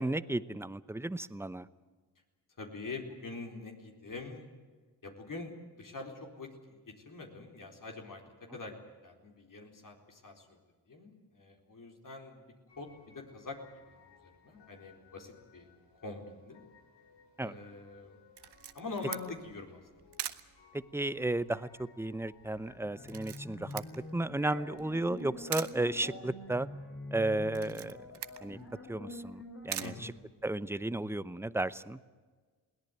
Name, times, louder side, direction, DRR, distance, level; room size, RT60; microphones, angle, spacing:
voice 1, 0.0-1.7 17.4-17.5 20.7-23.8 24.1-26.7 27.1-28.0 28.4-28.6 28.9-30.1 30.4-32.0, right 2 dB, 5° right, 16 dB, 0.8 m, -34 dB
voice 2, 2.6-4.5 5.0-10.6 10.9-13.6 13.9-15.7 16.0-16.6 17.4-18.2 18.7-20.1 29.8-30.2, left 3 dB, 50° left, 2 dB, 4.2 m, -45 dB
sound 1, 12.7-26.1, left 6 dB, 80° left, 4.1 m, -63 dB
Camera, 18.4-30.8, right 10 dB, 70° right, 1.2 m, -46 dB
sound 2, 22.8-30.0, left 1 dB, 35° left, 5.3 m, -46 dB
21.5 x 17.5 x 9.5 m, 1.4 s
cardioid pair, 80°, 41 cm